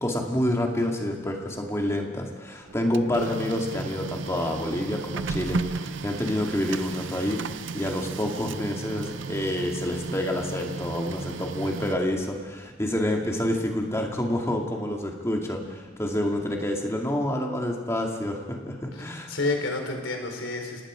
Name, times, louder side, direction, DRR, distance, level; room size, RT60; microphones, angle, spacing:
voice 1, 0.0-19.3, left 1 dB, 15° left, 1 dB, 2.3 m, -28 dB
Printer, 2.7-12.4, right 4 dB, 65° right, 0.6 m, -35 dB
voice 2, 18.9-20.8, left 2 dB, 70° left, 3 dB, 4.0 m, -30 dB
27.5 x 18.5 x 5.1 m, 1.4 s
head